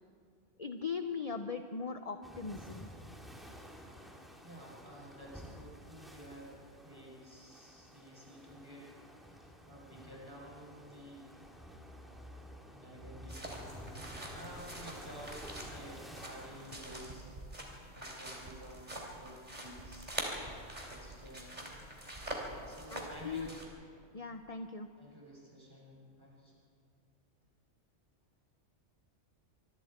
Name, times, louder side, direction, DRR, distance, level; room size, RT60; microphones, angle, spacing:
voice 1, 0.6-2.9 22.9-23.5 24.1-24.9, left 5 dB, 35° left, 7 dB, 0.8 m, -39 dB
sound 1, 2.2-16.8, equal, ahead, 2.6 m, -51 dB
voice 2, 4.4-8.9 9.2-11.3 12.7-17.3 17.6-20.2 20.9-21.8 22.6-23.8 25.0-26.5, equal, 20° right, -4 dB, 6.4 m, -52 dB
sound 2, 13.3-23.6, right 1 dB, 35° right, 3.5 m, -45 dB
25.0 x 24.0 x 4.4 m, 2.3 s
omnidirectional pair, 1.2 m